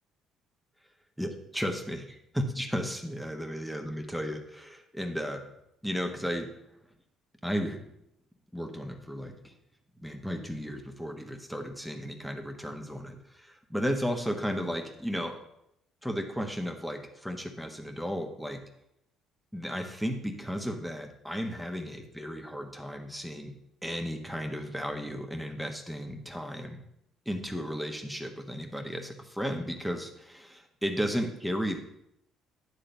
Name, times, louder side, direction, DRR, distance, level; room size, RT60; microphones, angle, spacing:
voice 1, 1.2-5.4 5.8-6.5 7.4-7.8 8.5-9.5 10.0-15.4 16.0-18.6 19.5-23.5 23.8-26.8 27.2-31.8, equal, ahead, 4 dB, 1.4 m, -34 dB
10.0 x 3.8 x 7.0 m, 0.81 s
hypercardioid pair, 55°, 0 cm